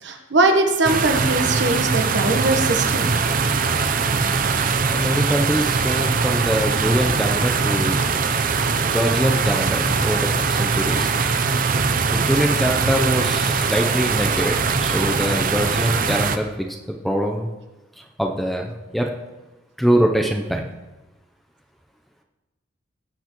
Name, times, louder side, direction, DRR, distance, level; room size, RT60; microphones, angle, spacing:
voice 1, 0.0-3.1, right 2 dB, 60° right, 4 dB, 1.2 m, -21 dB
sound 1, 0.8-16.4, right 5 dB, 40° right, 0.6 m, -21 dB
voice 2, 4.8-8.0 8.9-11.1 12.0-16.5 16.9-17.5 18.0-19.1 19.8-20.7, equal, ahead, 1 dB, 0.6 m, -23 dB
18.0 x 7.9 x 3.1 m, 1.1 s
head